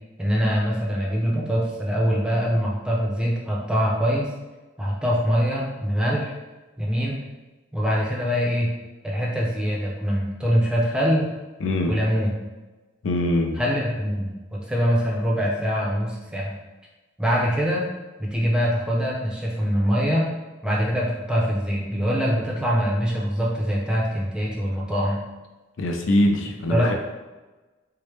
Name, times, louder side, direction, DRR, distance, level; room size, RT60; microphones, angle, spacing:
voice 1, 0.2-4.3 4.8-6.3 6.8-7.2 7.7-8.7 9.0-11.3 11.9-12.3 13.6-16.5 17.2-17.9 18.2-20.3 20.6-25.2 26.7-26.9, equal, 5° right, -4 dB, 0.5 m, -23 dB
voice 2, 11.6-12.0 13.0-13.6 25.8-26.9, left 1 dB, 85° left, 3 dB, 0.5 m, -22 dB
4.6 x 2.1 x 3.2 m, 1.2 s
head